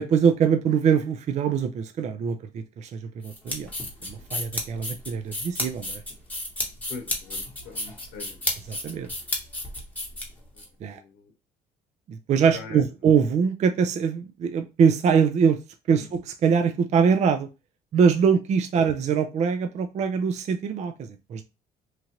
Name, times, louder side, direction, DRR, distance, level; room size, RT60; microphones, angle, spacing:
voice 1, 0.0-3.7 4.0-6.0 8.7-9.1 10.8-11.0 12.1-15.6 15.9-17.5 17.9-21.4, right 6 dB, 45° right, 0.4 m, -23 dB
sound 1, 3.2-10.7, left 1 dB, 10° left, 1.0 m, -32 dB
voice 2, 6.9-8.5 10.5-10.6 10.9-11.3 12.5-12.8 16.0-16.1 18.8-18.9, left 4 dB, 85° left, 0.8 m, -42 dB
3.0 x 2.4 x 2.8 m
cardioid pair, 110°, 17 cm